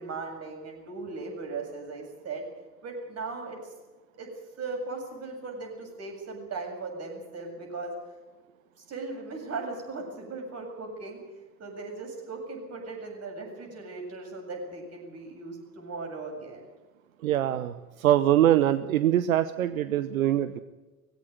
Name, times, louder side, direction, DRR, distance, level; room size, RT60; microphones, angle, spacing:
voice 1, 0.0-2.5 2.8-3.6 4.2-4.3 4.6-7.9 8.8-11.2 11.6-16.6, right 3 dB, 35° right, 1 dB, 7.7 m, -38 dB
voice 2, 17.2-20.6, right 12 dB, 70° right, 14 dB, 0.9 m, -23 dB
21.0 x 16.0 x 9.3 m, 1.2 s
figure-of-eight pair, 70°, 42 cm